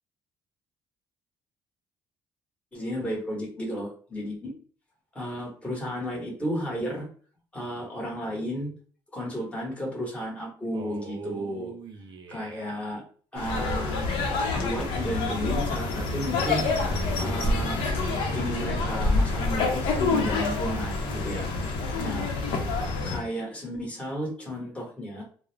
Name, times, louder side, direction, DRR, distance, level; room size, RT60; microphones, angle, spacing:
voice 1, 2.7-4.5 5.1-7.1 7.5-8.7 9.1-11.7 12.3-13.0 13.3-14.1 14.5-16.7 17.2-17.8 18.3-21.4 22.0-22.3 23.0-25.2, equal, 15° left, -2 dB, 1.1 m, -33 dB
Male speech man speaking, 10.7-12.9 14.0-15.8 16.7-18.7, right 5 dB, 55° right, 0.5 m, -44 dB
sound 1, 13.4-23.2, left 3 dB, 90° left, 0.6 m, -27 dB
2.4 x 2.0 x 3.1 m, 0.43 s
cardioid pair, 120°, 9 cm